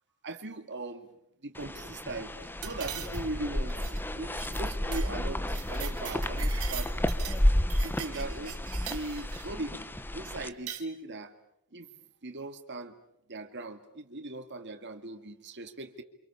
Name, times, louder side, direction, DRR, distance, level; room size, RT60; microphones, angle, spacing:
voice 1, 0.2-1.1 1.4-6.9 7.8-8.6 8.9-9.8 10.1-11.3 11.7-11.9 12.2-12.9 13.3-16.0, right 2 dB, 55° right, 7 dB, 2.1 m, -39 dB
sound 1, 1.5-10.5, left 1 dB, 10° left, 1.2 m, -31 dB
sound 2, 2.6-3.4 3.7-4.0 4.3-4.6 4.9-5.1 5.4-7.4 7.7-9.5 10.4-10.8, right 11 dB, 75° right, 3.2 m, -42 dB
30.0 x 27.0 x 7.1 m, 0.77 s
head